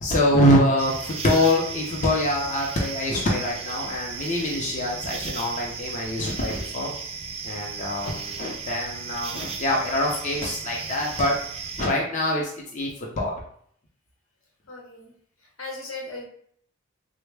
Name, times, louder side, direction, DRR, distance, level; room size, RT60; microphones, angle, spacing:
voice 1, 0.0-6.9 7.4-11.4 11.8-13.3, left 1 dB, 35° left, -2 dB, 0.6 m, -24 dB
sound 1, 0.8-11.9, right 5 dB, 30° right, 0.3 m, -35 dB
voice 2, 8.0-8.7 14.7-15.1 15.6-16.2, left 2 dB, 80° left, -1 dB, 1.0 m, -39 dB
3.5 x 2.1 x 3.2 m, 0.62 s
head